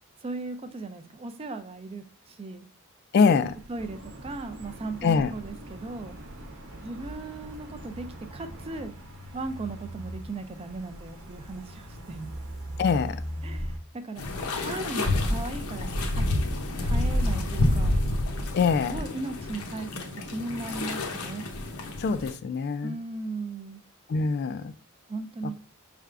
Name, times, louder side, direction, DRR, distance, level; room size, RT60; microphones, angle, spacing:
voice 1, 0.2-2.7 3.3-3.4 3.7-6.2 6.8-8.1 8.3-8.9 9.3-12.3 13.4-16.2 16.8-18.0 18.9-21.5 22.8-23.8 25.1-25.5, right 3 dB, 25° right, 10 dB, 0.4 m, -37 dB
voice 2, 3.1-3.5 5.0-5.3 12.8-13.2 18.5-19.0 22.0-23.0 24.1-24.7, left 5 dB, 50° left, 12 dB, 0.3 m, -24 dB
sound 1, 3.4-13.8, equal, 75° right, 0.9 m, -41 dB
sound 2, 3.8-8.9, right 1 dB, 55° right, 0.7 m, -46 dB
sound 3, 14.2-22.3, left 1 dB, 80° left, 0.8 m, -28 dB
5.5 x 3.4 x 2.4 m, 0.37 s
head